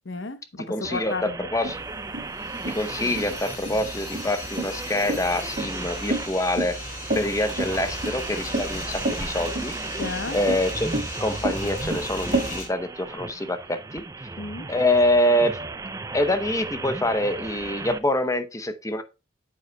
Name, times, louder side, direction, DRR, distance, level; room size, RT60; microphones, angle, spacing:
voice 1, 0.0-1.4 10.0-10.4 14.4-14.7, left 3 dB, 65° left, 0.9 m, -33 dB
voice 2, 0.6-1.8 2.7-6.8 7.2-9.7 10.3-10.9 11.2-14.0 14.7-15.6 16.1-19.0, left 1 dB, 15° left, 0.7 m, -25 dB
sound 1, 0.8-18.0, right 3 dB, 15° right, 0.4 m, -36 dB
sound 2, 1.6-12.5, right 1 dB, 40° right, 4.8 m, -30 dB
sound 3, 2.3-12.7, left 2 dB, 35° left, 3.4 m, -37 dB
9.3 x 7.8 x 2.2 m
head